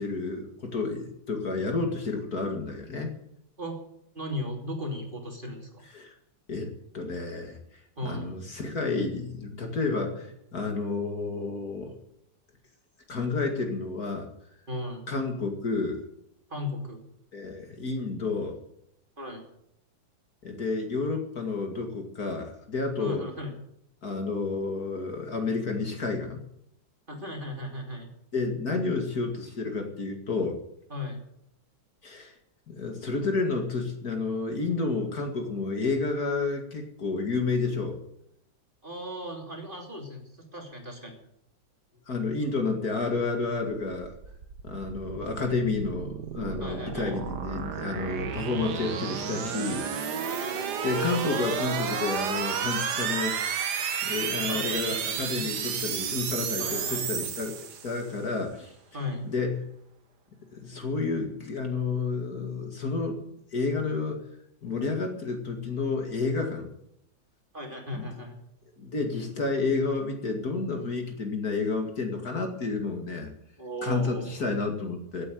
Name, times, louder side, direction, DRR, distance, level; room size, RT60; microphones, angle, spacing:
voice 1, 0.0-3.1 5.9-6.1 6.5-7.6 8.0-12.0 13.1-14.3 15.1-16.0 17.3-18.6 20.4-23.2 24.0-26.4 28.3-30.6 32.0-32.3 32.7-38.0 42.1-44.1 44.6-50.5 50.8-53.4 54.0-57.5 57.8-58.7 59.2-59.6 60.5-63.2 63.5-64.2 64.6-66.7 67.9-68.1 68.8-73.3 73.8-75.3, left 3 dB, 50° left, 3 dB, 2.5 m, -30 dB
voice 2, 4.1-5.8 8.0-8.3 14.7-15.0 16.5-17.0 19.2-19.4 23.0-23.5 27.1-28.1 30.9-31.2 38.8-40.2 40.5-41.2 46.6-47.2 50.2-50.8 54.5-55.4 56.6-57.1 58.9-59.2 67.5-68.4 73.6-74.3, left 1 dB, 25° right, 1 dB, 3.1 m, -36 dB
sound 1, 43.8-58.1, right 7 dB, 60° right, 1.7 m, -32 dB
15.5 x 8.5 x 9.3 m, 0.77 s
omnidirectional pair, 2.1 m